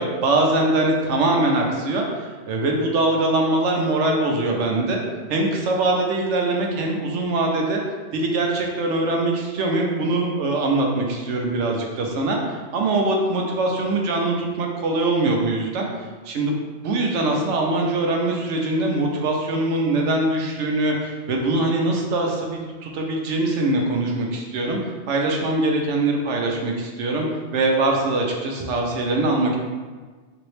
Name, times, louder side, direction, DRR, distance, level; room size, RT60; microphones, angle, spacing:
voice 1, 0.0-5.0 5.3-7.8 8.1-15.9 16.3-16.5 16.8-24.8 25.1-27.3 27.5-29.6, right 2 dB, 85° right, 0 dB, 1.0 m, -22 dB
3.5 x 3.0 x 3.2 m, 1.4 s
omnidirectional pair, 1.2 m